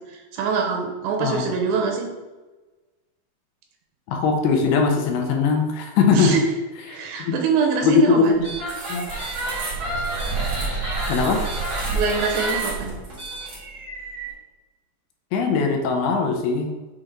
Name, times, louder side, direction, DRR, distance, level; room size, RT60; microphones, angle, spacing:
voice 1, 0.0-2.1 6.1-6.4 6.9-8.4 11.9-12.9, right 5 dB, 90° right, 2 dB, 3.1 m, -24 dB
voice 2, 4.1-6.4 6.9-7.4 7.8-8.5 8.9-9.1 11.1-11.5 15.3-16.7, left 5 dB, 80° left, 3 dB, 2.6 m, -20 dB
sound 1, 8.4-14.3, right 3 dB, 40° right, 2.0 m, -28 dB
7.8 x 3.3 x 3.7 m, 1.2 s
omnidirectional pair, 4.8 m